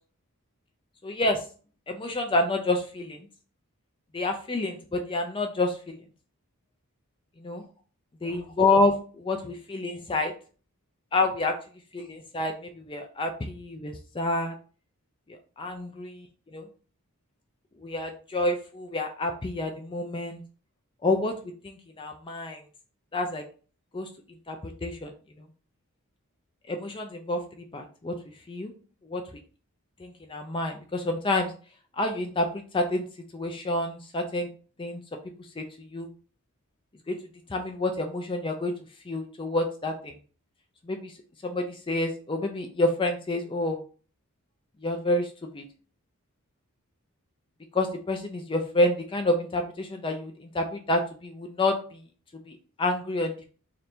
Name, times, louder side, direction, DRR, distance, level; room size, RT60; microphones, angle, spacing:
voice 1, 1.0-1.4 1.9-3.2 4.1-6.0 7.4-7.6 8.2-9.4 9.7-10.3 11.1-11.5 11.9-14.5 15.6-16.1 16.5-16.6 17.8-20.4 21.0-21.3 21.6-22.6 23.1-23.4 23.9-24.1 24.5-25.1 26.7-27.4 27.7-28.1 28.5-28.7 29.0-29.2 30.0-31.5 32.0-33.0 33.3-34.5 34.8-35.0 35.6-35.7 35.9-36.1 37.1-37.2 37.5-38.7 39.1-40.1 40.9-41.1 41.4-43.8 44.8-45.3 45.5-45.6 47.7-52.0 52.8-53.4, left 2 dB, 25° left, 4 dB, 0.4 m, -28 dB
3.3 x 2.6 x 4.3 m, 0.39 s
head